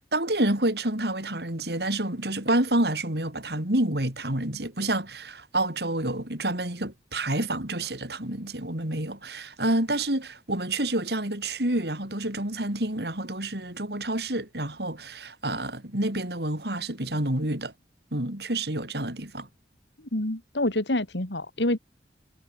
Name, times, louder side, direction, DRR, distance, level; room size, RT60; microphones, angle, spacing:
voice 1, 0.0-17.7 18.1-19.5, right 1 dB, 65° right, 4.6 m, -28 dB
voice 2, 20.1-21.8, left 1 dB, 90° left, 3.3 m, -27 dB
head